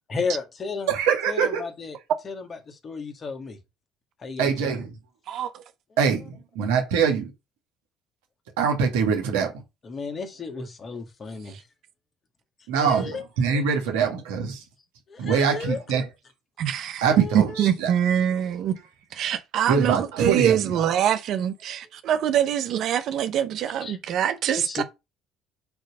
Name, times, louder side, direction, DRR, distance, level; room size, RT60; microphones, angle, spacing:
voice 1, 0.1-0.9 1.3-2.0 2.2-3.6 4.2-4.8 9.8-11.6 12.8-13.2 15.1-15.8 17.0-17.7 23.8-24.0 24.5-24.8, left 4 dB, 40° left, 1.8 m, -33 dB
voice 2, 0.9-1.6 4.4-4.9 6.0-7.3 8.6-9.5 12.7-13.1 13.4-14.6 15.2-16.0 17.0-17.9 19.7-20.9, right 6 dB, 85° right, 1.9 m, -23 dB
voice 3, 5.3-5.6 11.5-11.6 16.6-17.0 17.3-18.7 19.1-24.8, right 10 dB, 65° right, 0.7 m, -24 dB
7.9 x 3.2 x 5.3 m
hypercardioid pair, 65°, 0 cm